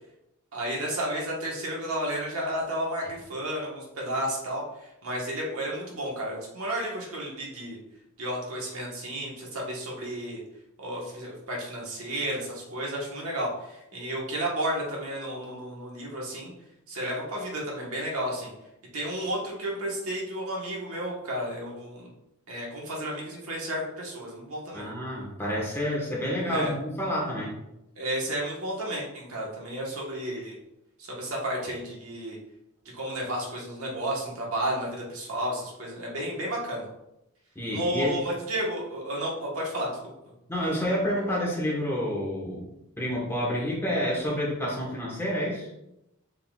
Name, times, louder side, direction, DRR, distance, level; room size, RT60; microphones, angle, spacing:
voice 1, 0.5-7.8 8.2-10.4 10.8-16.5 16.9-18.5 18.9-22.1 22.5-24.9 26.4-26.7 28.0-30.6 31.0-32.4 32.9-36.9 37.7-39.9, right 1 dB, 75° right, -3 dB, 1.4 m, -32 dB
voice 2, 24.7-27.6 37.5-38.2 40.5-42.6 43.0-45.7, equal, 10° left, -4 dB, 1.3 m, -29 dB
5.7 x 3.8 x 2.4 m, 0.87 s
head